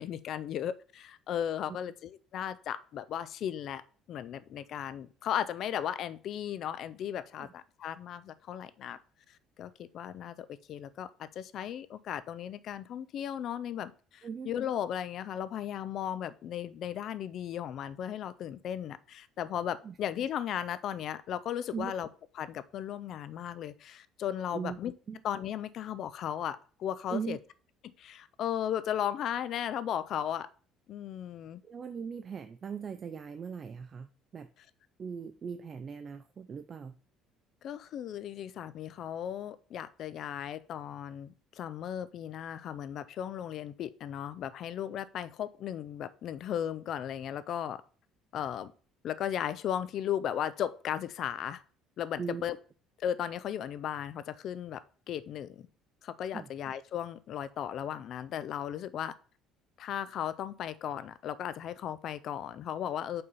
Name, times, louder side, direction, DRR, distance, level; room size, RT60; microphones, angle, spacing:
voice 1, 0.0-3.8 4.1-9.0 9.6-22.1 22.4-24.9 25.2-27.4 27.8-30.5 30.9-31.6 37.6-47.8 48.3-48.7 49.0-51.6 52.0-52.6 53.0-54.8 55.1-55.7 56.0-59.1 59.8-63.2, left 10 dB, 45° left, 0.4 m, -36 dB
voice 2, 14.2-14.5 19.8-19.9 21.7-21.9 24.5-24.8 25.1-25.2 27.1-27.4 31.6-34.5 35.0-36.9 52.2-52.4 56.3-56.5, right 6 dB, 25° right, 0.3 m, -39 dB
5.4 x 4.1 x 5.5 m
cardioid pair, 170°, 0 cm